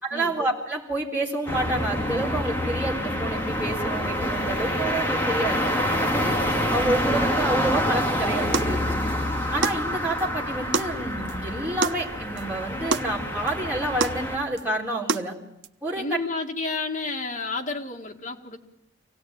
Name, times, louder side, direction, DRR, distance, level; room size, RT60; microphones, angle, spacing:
voice 1, 0.0-6.3 6.7-8.8 9.5-15.4 15.8-16.2, right 1 dB, 10° right, -4 dB, 3.9 m, -28 dB
sound 1, 1.5-14.4, equal, 10° left, 2.3 m, -27 dB
sound 2, 8.0-8.1 8.5-8.8 9.1-9.2 9.6-9.8 10.2-10.3 10.7-10.9 11.3-11.4 11.8-12.0 12.4-12.5 12.9-13.1 13.5-13.6 14.0-14.2 14.6-14.7 15.1-15.3 15.6-15.7, right 4 dB, 70° right, 0.8 m, -27 dB
voice 2, 15.9-18.6, left 3 dB, 40° left, 1 dB, 2.2 m, -31 dB
25.5 x 17.5 x 9.1 m, 0.83 s
head